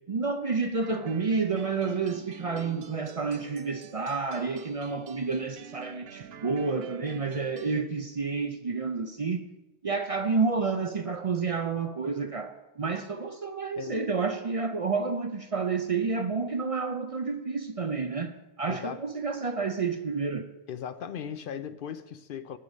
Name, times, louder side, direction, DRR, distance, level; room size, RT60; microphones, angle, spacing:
voice 1, 0.1-9.5 9.8-20.5, right 4 dB, 45° right, 0.5 m, -30 dB
sound 1, 0.8-7.8, right 8 dB, 75° right, 0.8 m, -48 dB
voice 2, 18.7-19.1 20.7-22.6, left 8 dB, 65° left, 0.7 m, -37 dB
11.0 x 5.3 x 8.0 m
omnidirectional pair, 1.0 m